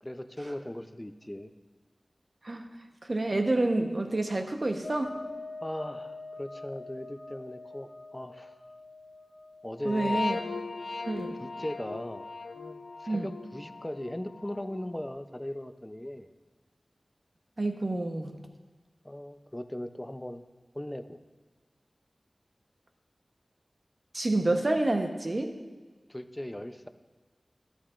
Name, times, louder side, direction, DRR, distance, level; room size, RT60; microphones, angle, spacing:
voice 1, 0.0-1.5 5.6-8.5 9.6-10.3 11.4-12.3 12.5-16.3 19.0-20.4 20.7-21.2 26.1-26.9, left 1 dB, 15° left, 9 dB, 0.5 m, -38 dB
voice 2, 3.1-5.2 9.8-10.4 11.0-11.4 13.1-13.3 17.6-18.4 24.1-25.6, right 2 dB, 50° right, 4 dB, 0.9 m, -28 dB
sound 1, 4.8-9.3 9.5-15.1, left 3 dB, 90° left, 0.7 m, -39 dB
12.5 x 11.5 x 2.5 m, 1.3 s
wide cardioid pair, 65°, 0 cm